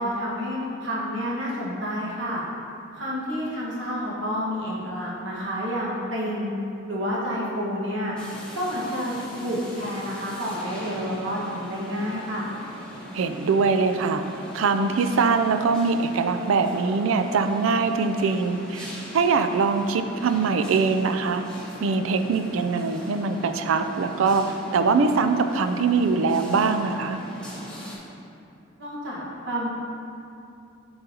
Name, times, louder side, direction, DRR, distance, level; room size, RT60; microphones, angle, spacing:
voice 1, 0.0-2.4 2.9-6.5 6.9-8.1 8.5-12.4 28.8-29.7, equal, 60° right, -6 dB, 1.4 m, -29 dB
sound 1, 8.2-28.0, left 1 dB, 5° left, 1.0 m, -40 dB
voice 2, 13.1-14.2 14.5-18.9 19.1-21.4 21.8-27.2, right 4 dB, 85° right, 8 dB, 0.4 m, -22 dB
11.0 x 3.9 x 2.8 m, 2.6 s
head